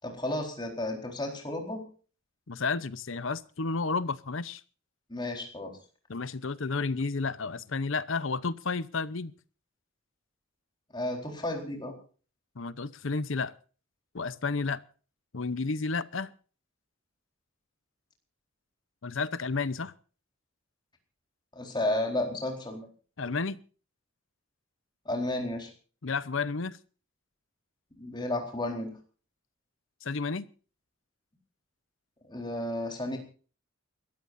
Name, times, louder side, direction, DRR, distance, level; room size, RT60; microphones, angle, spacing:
voice 1, 0.0-1.8 5.1-5.8 10.9-11.9 21.5-22.9 25.1-25.7 28.0-28.9 32.3-33.2, left 1 dB, 20° left, 4.1 m, -32 dB
voice 2, 2.5-4.6 6.1-9.3 12.6-13.5 14.1-14.8 15.3-16.3 19.0-19.9 23.2-23.6 26.0-26.8 30.0-30.5, left 4 dB, 65° left, 0.8 m, -31 dB
28.5 x 14.0 x 2.6 m
head